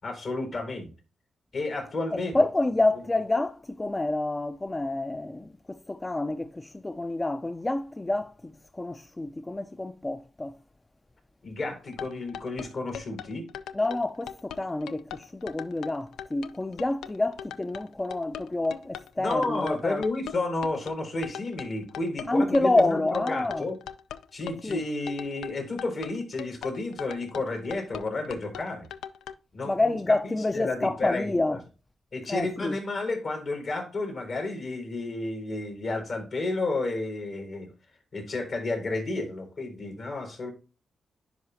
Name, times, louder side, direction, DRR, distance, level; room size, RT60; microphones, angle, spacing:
voice 1, 0.0-0.9 1.5-2.4 11.4-13.4 19.2-23.8 24.3-28.9 29.5-30.1 30.5-31.3 32.1-37.7 38.1-40.5, left 2 dB, 70° left, 4.0 m, -31 dB
voice 2, 2.1-10.6 13.7-20.0 22.3-23.7 24.6-24.8 29.6-31.6 32.3-32.8, left 2 dB, 25° left, 0.4 m, -28 dB
sound 1, 11.9-29.3, left 9 dB, 90° left, 0.3 m, -40 dB
10.5 x 4.9 x 2.7 m
supercardioid pair, 50°, 0 cm